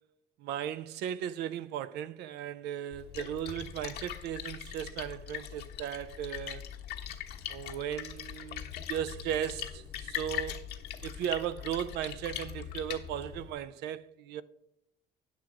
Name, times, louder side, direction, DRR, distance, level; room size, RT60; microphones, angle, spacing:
voice 1, 0.4-6.6 7.5-10.7 11.0-14.4, right 10 dB, 80° right, 0.5 m, -36 dB
Splash splatter, 2.9-13.5, left 10 dB, 75° left, 1.2 m, -41 dB
10.5 x 6.4 x 4.7 m
cardioid pair, 110°, 17 cm